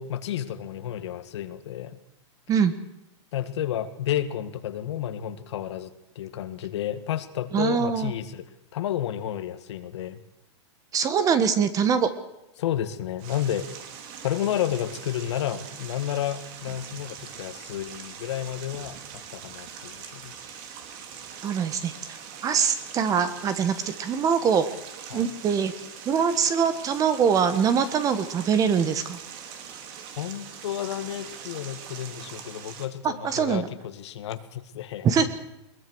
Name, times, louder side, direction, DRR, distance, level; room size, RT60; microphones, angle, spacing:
voice 1, 0.0-2.0 3.3-8.5 8.7-10.2 12.6-13.7 14.2-20.4 25.1-25.3 30.2-35.1, left 11 dB, 65° left, 10 dB, 1.9 m, -31 dB
voice 2, 7.5-8.1 10.9-12.1 21.4-24.6 25.1-25.7 26.0-29.2 33.0-33.7 35.0-35.3, right 7 dB, 20° right, 12 dB, 1.5 m, -23 dB
sound 1, 13.2-32.9, right 7 dB, 45° right, 3.0 m, -42 dB
21.5 x 20.5 x 6.4 m, 0.87 s
hypercardioid pair, 140°, 15 cm